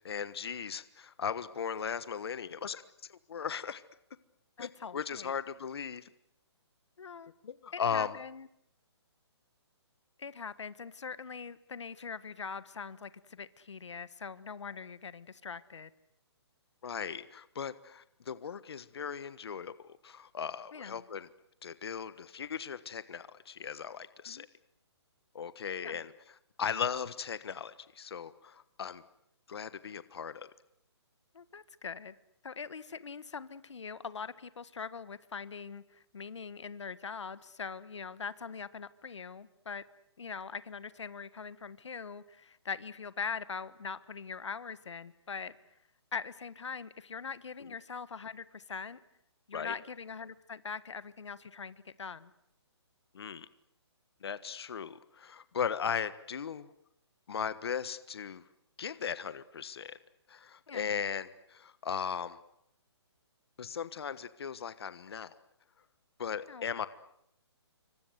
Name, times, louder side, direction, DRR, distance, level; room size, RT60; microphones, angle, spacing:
voice 1, 0.0-3.8 4.6-4.7 4.9-6.1 7.4-8.2 16.8-21.3 21.6-24.5 25.3-26.1 26.6-29.0 29.5-30.5 49.5-49.7 53.1-53.5 54.2-56.7 57.3-58.4 58.8-60.0 60.3-62.4 63.6-65.3 66.2-66.9, left 7 dB, 60° left, 14 dB, 1.3 m, -37 dB
voice 2, 4.6-5.3 7.0-7.3 7.7-8.5 10.2-15.9 20.7-21.0 24.3-24.5 25.8-26.0 31.3-32.1 32.4-39.8 40.2-45.5 46.1-49.0 49.5-52.3 60.7-60.9 66.5-66.6, left 5 dB, 90° left, 15 dB, 1.5 m, -42 dB
27.0 x 25.0 x 8.1 m, 0.77 s
hypercardioid pair, 170°, 15 cm